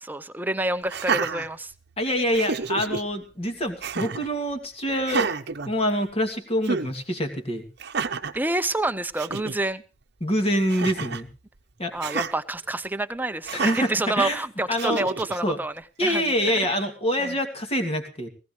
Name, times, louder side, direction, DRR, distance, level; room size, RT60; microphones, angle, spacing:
voice 1, 0.0-1.7 8.3-9.8 11.9-15.7 16.0-16.2 17.2-17.4, right 2 dB, 10° right, 11 dB, 0.7 m, -28 dB
Laughter, 0.9-2.0 2.3-3.0 3.8-4.3 5.0-6.3 6.6-6.9 7.8-8.4 8.9-9.0 9.2-9.6 10.7-11.3 12.0-12.3 13.5-13.9 14.8-15.4, right 5 dB, 60° right, 0.9 m, -29 dB
voice 2, 2.0-5.3 5.7-7.7 10.2-11.3 11.8-11.9 13.5-14.4 14.7-15.2 15.4-15.6 16.0-18.3, equal, 30° left, 6 dB, 2.6 m, -25 dB
19.0 x 16.0 x 3.2 m, 0.33 s
head